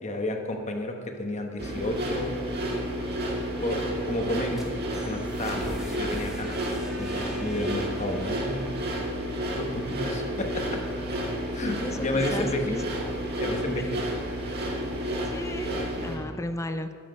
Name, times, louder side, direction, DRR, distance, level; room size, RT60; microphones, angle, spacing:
voice 1, 0.0-2.4 3.6-4.7 5.0-8.8 9.5-10.8 11.5-12.6 13.4-13.9, left 1 dB, 35° left, 4 dB, 1.0 m, -32 dB
sound 1, 1.6-16.2, equal, 55° right, 1.8 m, -31 dB
sound 2, 4.3-10.2, equal, ahead, 1.5 m, -44 dB
voice 2, 11.8-12.9 13.8-14.1 15.2-17.0, left 1 dB, 15° left, 9 dB, 0.4 m, -35 dB
12.0 x 7.4 x 5.2 m, 2.2 s
head